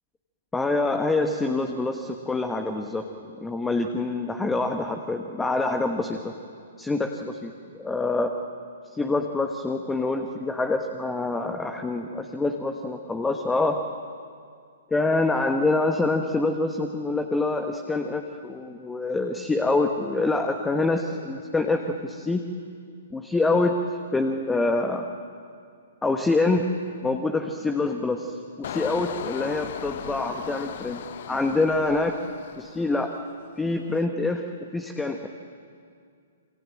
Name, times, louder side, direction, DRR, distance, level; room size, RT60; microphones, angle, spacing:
voice 1, 0.5-3.1 3.4-6.3 6.8-8.4 8.9-13.8 14.9-22.4 23.1-23.7 24.1-25.1 26.0-26.7 27.0-31.0 31.3-32.2 32.6-33.1 33.6-34.5 34.7-35.3, left 3 dB, 10° left, 5 dB, 1.4 m, -26 dB
Engine, 28.6-33.3 33.7-34.0, left 10 dB, 50° left, 1.0 m, -37 dB
27.5 x 25.5 x 7.7 m, 2.3 s
figure-of-eight pair, 115°, 0 cm